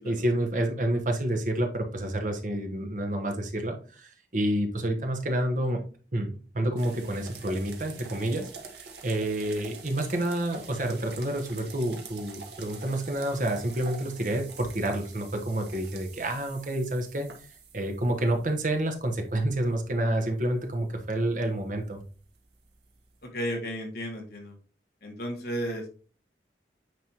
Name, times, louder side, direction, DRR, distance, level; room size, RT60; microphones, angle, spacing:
voice 1, 0.0-5.8 6.1-8.5 9.0-17.3 17.7-22.0, right 1 dB, 45° right, 4 dB, 1.1 m, -29 dB
sound 1, 6.8-23.2, right 5 dB, 70° right, 1.3 m, -47 dB
voice 2, 23.2-24.5 25.0-25.9, equal, 55° left, 1 dB, 1.5 m, -34 dB
9.3 x 3.4 x 2.9 m, 0.38 s
head